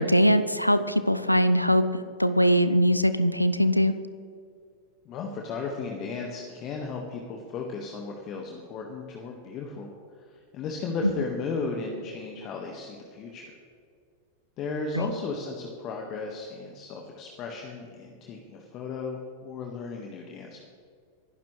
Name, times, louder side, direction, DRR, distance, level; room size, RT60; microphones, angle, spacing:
voice 1, 0.0-3.9 14.9-15.1, equal, 90° left, 12 dB, 0.6 m, -22 dB
voice 2, 5.1-13.5 14.6-20.6, left 4 dB, 35° left, 1 dB, 1.6 m, -35 dB
23.0 x 12.0 x 3.2 m, 2.2 s
figure-of-eight pair, 90°, 0 cm